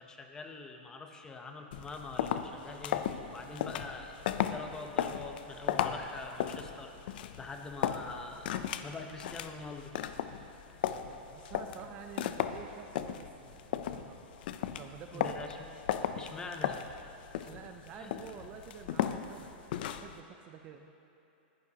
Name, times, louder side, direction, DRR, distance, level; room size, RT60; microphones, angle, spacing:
voice 1, 0.0-4.2 4.4-6.9 7.4-8.5 8.8-9.9 15.1-15.7 16.1-16.8 17.9-18.1, left 3 dB, 10° left, 4 dB, 0.7 m, -44 dB
sound 1, 1.7-20.2, left 10 dB, 60° left, 0.5 m, -36 dB
voice 2, 11.0-14.3 14.7-15.5 17.4-20.9, right 7 dB, 25° right, 5 dB, 0.5 m, -49 dB
19.5 x 11.5 x 2.9 m, 2.9 s
supercardioid pair, 160°, 6 cm